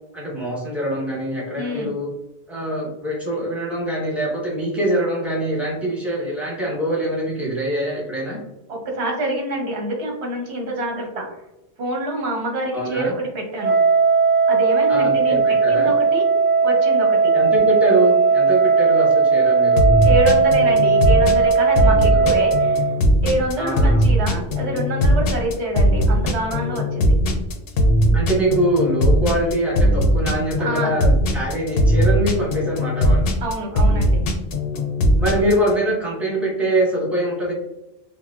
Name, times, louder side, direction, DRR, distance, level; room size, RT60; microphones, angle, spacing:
voice 1, 0.1-2.1 2.5-8.4 12.7-13.1 14.9-15.9 17.3-20.0 22.1-22.2 23.6-24.1 28.1-33.3 35.2-37.5, right 1 dB, ahead, -6 dB, 0.9 m, -23 dB
voice 2, 1.5-1.9 8.7-11.4 11.8-13.8 14.5-16.3 16.6-17.3 20.0-22.9 23.2-27.1 30.6-30.9 33.4-34.3, right 1 dB, 75° right, 1 dB, 1.2 m, -26 dB
Wind instrument woodwind instrument, 13.6-22.9, right 5 dB, 20° right, 0.3 m, -17 dB
sound 1, 19.8-35.7, equal, 65° left, 0.7 m, -18 dB
4.2 x 2.0 x 2.3 m, 0.91 s
omnidirectional pair, 1.1 m